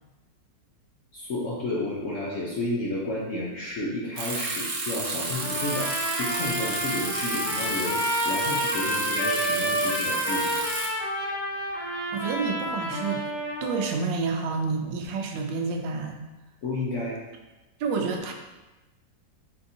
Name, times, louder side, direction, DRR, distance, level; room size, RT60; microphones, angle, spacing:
voice 1, 1.1-10.6 16.6-17.2, left 2 dB, 65° left, -5 dB, 0.8 m, -31 dB
Bicycle, 4.2-10.9, right 3 dB, 60° right, 0.8 m, -32 dB
Trumpet, 5.3-13.9, equal, 85° left, 2.0 m, -29 dB
voice 2, 12.1-13.2 13.6-16.2 17.8-18.3, right 4 dB, 80° right, 3 dB, 1.3 m, -29 dB
4.4 x 3.6 x 2.7 m, 1.1 s
omnidirectional pair, 2.0 m